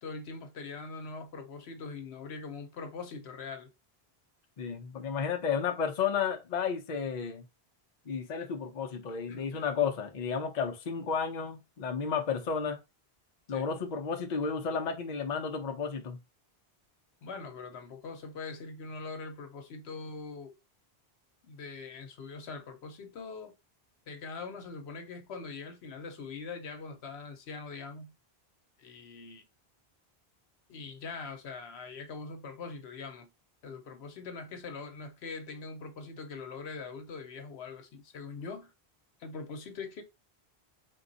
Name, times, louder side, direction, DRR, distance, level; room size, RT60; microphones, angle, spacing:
voice 1, 0.0-3.7 9.1-9.7 13.5-13.7 17.2-20.6 21.4-23.5 24.1-28.1 28.8-29.4 30.7-33.3 33.6-38.7 39.2-40.0, left 4 dB, 80° left, 1.0 m, -42 dB
voice 2, 4.6-7.4 8.1-12.8 13.5-16.2, left 6 dB, 50° left, 0.7 m, -32 dB
3.6 x 2.3 x 3.8 m
omnidirectional pair, 1.1 m